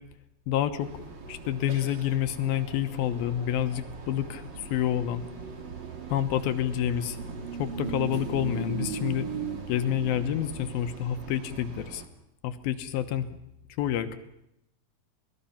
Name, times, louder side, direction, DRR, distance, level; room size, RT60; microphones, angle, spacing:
voice 1, 0.5-0.9 1.3-5.2 6.1-7.2 7.6-9.3 9.7-12.0 12.4-13.3 13.8-14.2, left 11 dB, 90° left, 10 dB, 3.0 m, -28 dB
sound 1, 0.8-12.1, right 5 dB, 40° right, 1.8 m, -38 dB
26.5 x 19.5 x 5.8 m, 0.82 s
omnidirectional pair, 4.2 m